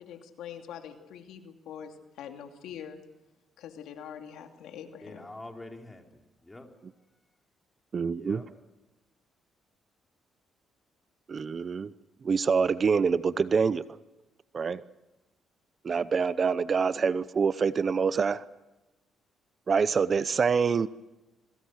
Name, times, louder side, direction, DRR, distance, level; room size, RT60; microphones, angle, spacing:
voice 1, 0.0-3.0 3.6-5.2, left 8 dB, 85° left, 5 dB, 2.7 m, -44 dB
voice 2, 5.0-6.7 7.9-8.5, left 2 dB, 15° left, 3 dB, 4.0 m, -46 dB
voice 3, 7.9-8.4 11.3-11.9 12.2-13.8 14.5-14.8 15.8-18.4 19.7-20.9, right 5 dB, 40° right, 16 dB, 0.8 m, -26 dB
27.0 x 22.5 x 6.5 m, 1.0 s
cardioid pair, 90°, 0 cm